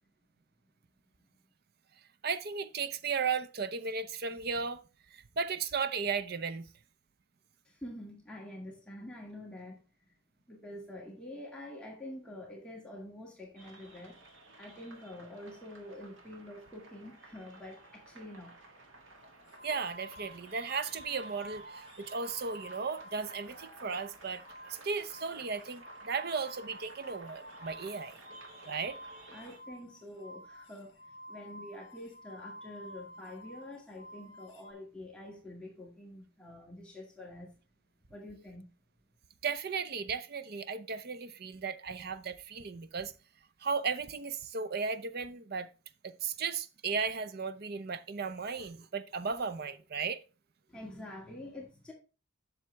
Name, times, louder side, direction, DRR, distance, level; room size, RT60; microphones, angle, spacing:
voice 1, 2.2-4.8 5.1-6.7 19.6-28.2 28.7-29.0 39.4-43.1 43.6-45.7 46.0-50.2, right 5 dB, 45° right, 0.6 m, -35 dB
voice 2, 7.6-10.1 10.5-14.2 14.6-18.6 29.3-37.5 38.1-38.7 50.7-51.9, left 1 dB, 5° left, 1.8 m, -47 dB
sound 1, 13.6-29.6, right 2 dB, 65° right, 1.6 m, -54 dB
sound 2, 19.5-23.5 23.8-34.7, equal, 55° left, 1.4 m, -51 dB
7.5 x 6.5 x 3.3 m
head